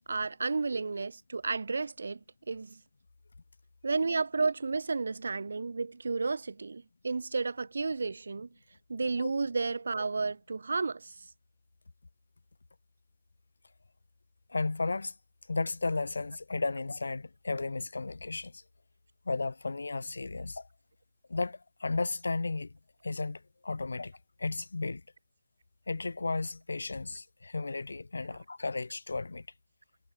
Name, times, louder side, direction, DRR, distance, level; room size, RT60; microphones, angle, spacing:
voice 1, 0.1-2.2 2.5-2.8 3.8-8.5 8.9-11.1, right 4 dB, 75° right, 3.2 m, -32 dB
voice 2, 14.5-15.1 15.5-18.6 19.2-20.7 21.3-22.7 23.0-24.1 24.4-25.0 25.9-29.5, left 3 dB, 80° left, 1.2 m, -34 dB
figure-of-eight pair, 140°, 0 cm